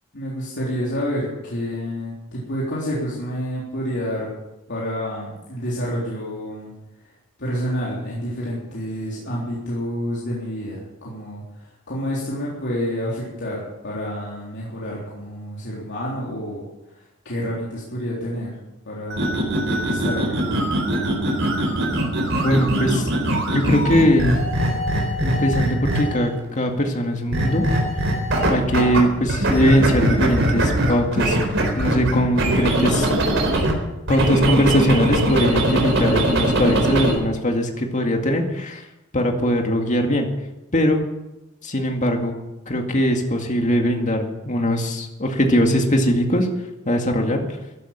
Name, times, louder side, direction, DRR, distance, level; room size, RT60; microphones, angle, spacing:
voice 1, 0.1-4.3 4.7-6.7 7.4-16.6 17.3-18.5 18.9-19.4 19.8-20.6, equal, 55° left, -6 dB, 3.8 m, -28 dB
sound 1, 19.1-26.3 27.3-29.0 29.3-33.7 34.1-37.2, right 1 dB, 60° right, 4.3 m, -21 dB
voice 2, 22.3-23.1 23.5-24.4 25.2-27.7 28.4-31.4 31.7-33.1 34.1-38.8 39.1-40.3 40.7-41.0 41.6-42.3 42.7-46.5 46.9-47.4, equal, 35° left, 3 dB, 2.2 m, -20 dB
15.0 x 11.5 x 7.5 m, 1.0 s
head